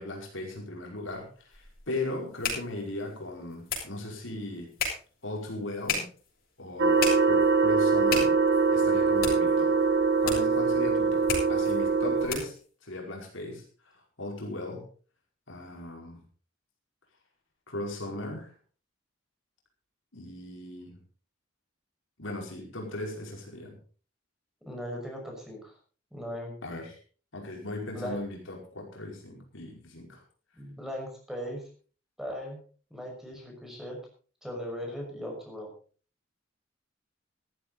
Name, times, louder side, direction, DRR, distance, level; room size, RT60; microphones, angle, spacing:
voice 1, 0.0-4.7 5.2-6.1 6.6-8.3 8.7-9.8 10.2-12.5 12.8-14.9 15.5-16.2 17.7-18.5 20.1-21.0 22.2-23.8 26.6-26.9 27.3-30.2, left 2 dB, 75° left, 0 dB, 5.1 m, -37 dB
sound 1, 1.1-12.7, left 4 dB, 55° left, 7.3 m, -37 dB
sound 2, 6.8-12.3, right 4 dB, 60° right, 2.2 m, -23 dB
voice 2, 24.6-25.7 26.1-26.5 27.9-28.2 30.6-31.7 32.2-32.6 32.9-34.0 34.4-35.7, equal, ahead, 0 dB, 5.8 m, -38 dB
15.0 x 14.0 x 4.1 m, 0.40 s
head